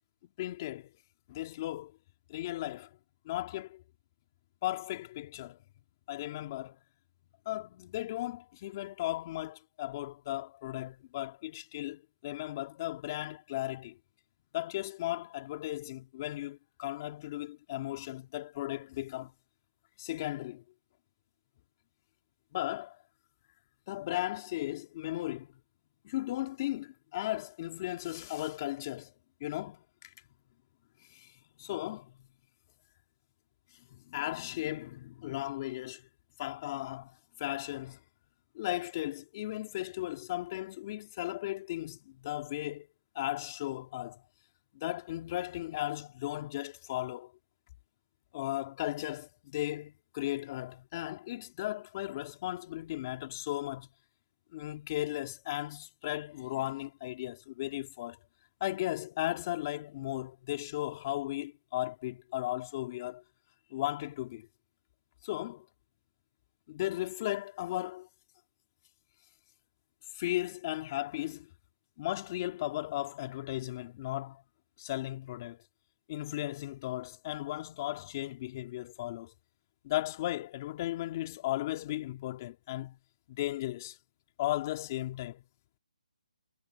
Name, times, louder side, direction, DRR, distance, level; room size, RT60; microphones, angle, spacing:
voice 1, 0.4-0.9 1.3-1.9 2.3-2.9 3.2-3.8 4.6-5.6 6.1-6.8 7.4-14.0 14.5-19.3 20.0-20.6 22.5-23.0 23.9-25.5 26.0-29.1 29.4-30.1 31.1-31.3 31.6-32.2 33.9-36.0 36.4-38.0 38.5-42.9 43.1-44.2 44.7-47.3 48.3-53.9 54.5-58.2 58.6-63.2 63.7-64.5 65.2-65.7 66.7-68.1 70.1-71.5 72.0-74.4 74.8-75.6 76.1-79.3 79.8-83.0 83.3-84.0 84.4-85.4, left 15 dB, 25° left, 2.9 m, -36 dB
hypercardioid pair, 165°, 4 cm